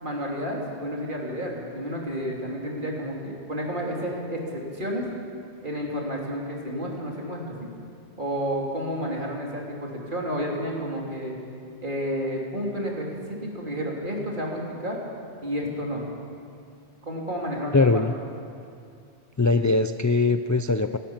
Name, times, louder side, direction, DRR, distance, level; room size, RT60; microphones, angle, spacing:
voice 1, 0.0-5.0 5.6-7.5 8.2-11.4 11.8-13.1 13.4-15.0 15.4-16.0 17.0-17.9, equal, 50° right, -2 dB, 3.5 m, -31 dB
voice 2, 17.7-18.2 19.4-21.0, left 3 dB, 30° left, 9 dB, 0.3 m, -21 dB
28.5 x 12.5 x 7.4 m, 2.5 s
omnidirectional pair, 1.1 m